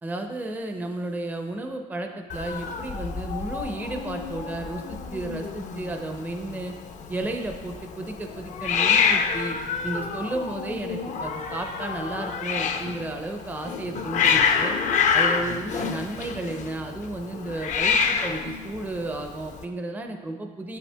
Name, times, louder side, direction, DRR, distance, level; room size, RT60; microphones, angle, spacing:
voice 1, 0.0-6.8 7.1-9.6 9.8-14.8 15.1-20.8, right 2 dB, 10° right, 4 dB, 0.5 m, -33 dB
Hiss, 2.3-19.6, left 6 dB, 45° left, 0.5 m, -27 dB
7.9 x 5.5 x 2.2 m, 1.4 s
cardioid pair, 110°, 17 cm